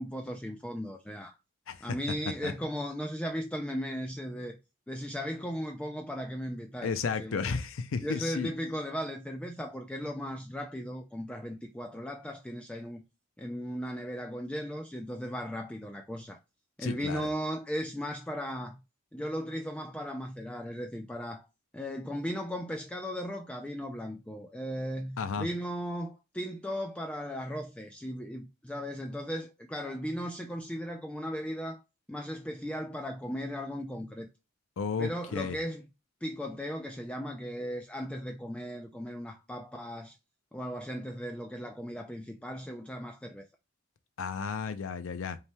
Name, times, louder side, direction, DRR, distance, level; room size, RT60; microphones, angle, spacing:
voice 1, 0.0-1.4 1.8-4.6 4.9-7.5 8.0-13.0 13.4-16.4 16.8-18.8 19.1-21.5 21.7-31.8 32.1-34.3 35.0-35.9 36.2-40.2 40.5-43.5, equal, 5° left, 0.3 m, -37 dB
voice 2, 6.8-8.5 16.8-17.3 25.2-25.5 34.8-35.6 44.2-45.4, left 5 dB, 80° left, 0.5 m, -33 dB
5.5 x 3.4 x 2.2 m
head